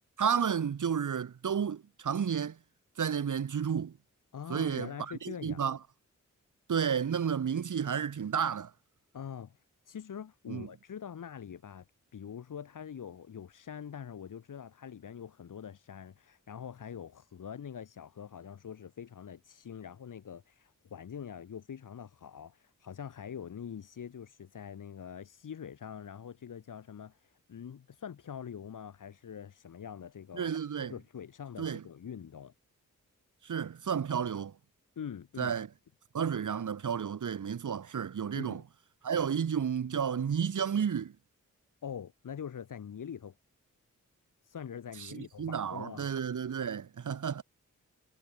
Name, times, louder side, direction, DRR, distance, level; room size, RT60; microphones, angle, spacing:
voice 1, 0.2-2.6 3.0-4.0 4.5-5.8 6.7-8.7 10.5-10.7 30.3-30.9 31.6-31.8 33.4-34.5 35.4-35.7 36.1-38.6 39.0-41.1 45.0-47.4, right 7 dB, 75° right, 2.6 m, -32 dB
voice 2, 4.3-5.6 9.1-11.8 12.1-30.5 30.8-32.5 35.0-35.5 38.3-38.6 41.8-43.3 44.4-46.1, left 8 dB, 90° left, 2.1 m, -44 dB
wide cardioid pair, 175°, 31 cm